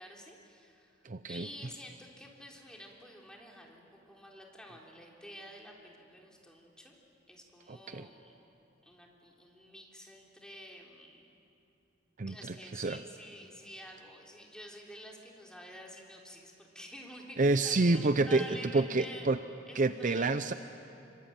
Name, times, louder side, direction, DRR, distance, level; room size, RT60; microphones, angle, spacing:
voice 1, 0.0-1.0 1.3-6.9 7.3-8.4 8.8-11.2 12.3-19.3 19.7-20.4, equal, 5° left, -1 dB, 3.7 m, -49 dB
voice 2, 1.0-1.5 7.7-8.1 12.2-12.3 12.7-13.0 17.4-19.4 19.7-20.5, right 3 dB, 45° right, 11 dB, 0.6 m, -28 dB
26.0 x 25.0 x 8.9 m, 2.8 s
head